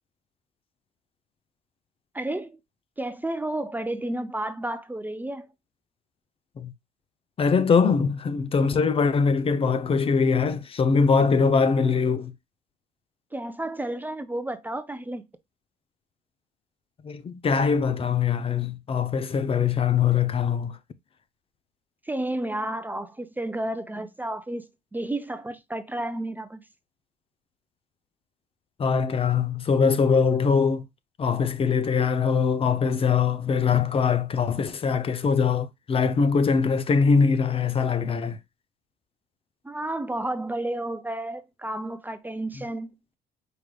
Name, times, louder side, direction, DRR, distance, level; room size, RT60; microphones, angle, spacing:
voice 1, 2.1-2.6 3.0-5.5 13.3-15.2 22.1-26.6 39.6-43.0, right 1 dB, 10° right, 0.5 m, -31 dB
voice 2, 7.4-12.3 17.0-20.8 28.8-30.9 31.2-38.4 42.6-42.7, left 5 dB, 35° left, 0.6 m, -22 dB
4.8 x 4.8 x 2.3 m
cardioid pair, 110°, 17 cm